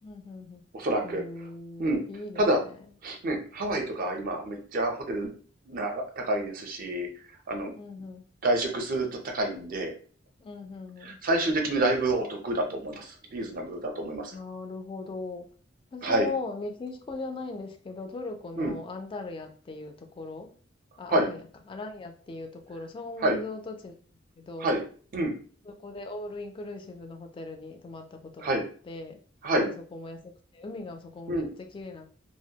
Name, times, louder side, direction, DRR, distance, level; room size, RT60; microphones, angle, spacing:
voice 1, 0.0-0.6 1.0-2.8 7.8-8.3 10.4-11.2 14.3-15.5 15.9-20.5 21.0-24.0 24.4-24.7 25.6-29.2 29.5-32.1, left 3 dB, 25° left, 5 dB, 0.3 m, -39 dB
voice 2, 0.7-1.2 1.8-2.0 2.4-2.6 3.0-5.3 5.7-7.1 7.5-7.7 8.4-9.9 11.0-14.4 16.0-16.3 18.6-18.8 21.1-21.3 23.2-23.4 24.6-24.8 25.1-25.3 28.4-28.6 29.4-29.7 31.3-31.5, right 1 dB, 45° right, 3 dB, 0.4 m, -28 dB
2.2 x 2.0 x 2.7 m, 0.42 s
head